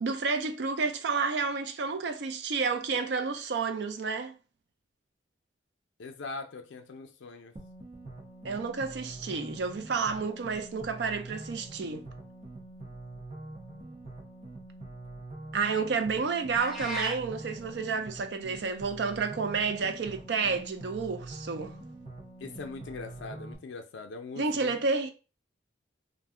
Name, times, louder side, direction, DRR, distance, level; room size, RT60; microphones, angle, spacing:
voice 1, 0.0-4.3 8.4-12.0 15.5-21.7 24.4-25.1, right 4 dB, 65° right, 0.4 m, -30 dB
voice 2, 6.0-7.5 22.4-24.8, left 4 dB, 75° left, 0.4 m, -41 dB
sound 1, 7.6-23.6, right 2 dB, 35° right, 0.7 m, -45 dB
sound 2, 16.6-17.2, equal, 5° right, 0.4 m, -34 dB
2.5 x 2.1 x 3.6 m
head